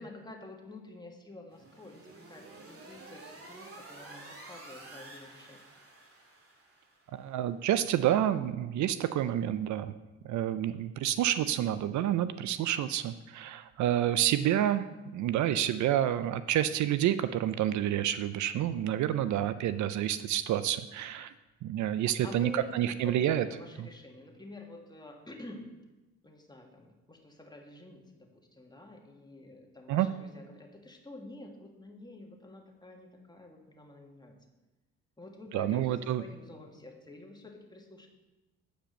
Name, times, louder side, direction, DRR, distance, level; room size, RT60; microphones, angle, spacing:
voice 1, 0.0-2.0 2.3-5.6 22.2-25.7 26.2-34.3 35.2-38.1, left 2 dB, 15° left, 2 dB, 1.8 m, -49 dB
sound 1, 1.5-7.1, right 2 dB, 50° right, 2.2 m, -50 dB
voice 2, 7.1-9.9 10.2-14.9 15.1-21.3 21.6-23.5 29.9-30.1 35.5-36.2, right 11 dB, 70° right, 13 dB, 0.5 m, -29 dB
8.8 x 5.1 x 6.5 m, 1.1 s
supercardioid pair, 70°, 30 cm